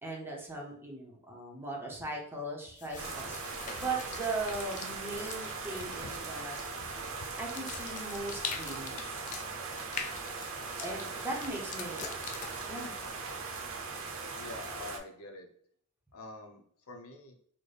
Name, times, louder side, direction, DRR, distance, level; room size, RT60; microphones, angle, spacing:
voice 1, 0.0-6.6 7.4-9.3 10.8-12.4 12.7-12.9, right 2 dB, 10° right, -1 dB, 0.8 m, -39 dB
sound 1, 2.8-14.0, left 6 dB, 35° left, 0.3 m, -45 dB
sound 2, 3.0-15.0, right 4 dB, 65° right, 0.7 m, -40 dB
voice 2, 14.4-15.5 16.1-17.4, left 2 dB, 75° left, 4 dB, 0.7 m, -46 dB
4.0 x 2.1 x 3.3 m, 0.63 s
head